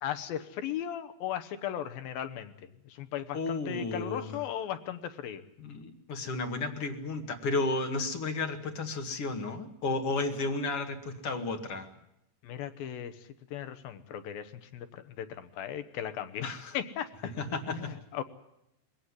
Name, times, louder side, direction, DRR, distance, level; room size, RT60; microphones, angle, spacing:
voice 1, 0.0-2.5 2.9-5.4 12.4-13.2 13.5-16.5 16.7-17.3 17.7-18.2, left 10 dB, 70° left, 10 dB, 2.6 m, -37 dB
voice 2, 3.3-4.4 5.6-11.9 16.4-16.8 17.4-17.9, left 3 dB, 45° left, 5 dB, 2.2 m, -33 dB
21.5 x 17.5 x 9.7 m, 0.80 s
omnidirectional pair, 4.7 m